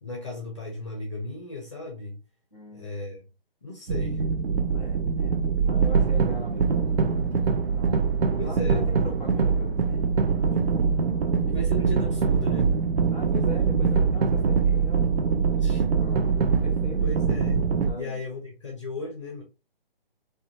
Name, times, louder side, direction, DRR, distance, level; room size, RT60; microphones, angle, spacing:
voice 1, 0.0-2.2 2.7-3.2 3.6-4.2 8.4-8.9 11.5-12.8 15.5-15.8 17.0-17.6 17.9-19.4, left 2 dB, 30° left, 0.5 m, -35 dB
voice 2, 2.5-3.0 4.7-7.3 7.7-8.1 8.4-10.2 10.5-11.0 13.1-16.3 16.6-17.2 17.8-18.2, left 1 dB, 5° right, 0.9 m, -42 dB
sound 1, 3.9-17.9, right 5 dB, 75° right, 0.5 m, -23 dB
2.5 x 2.2 x 2.8 m
hypercardioid pair, 160°, 30 cm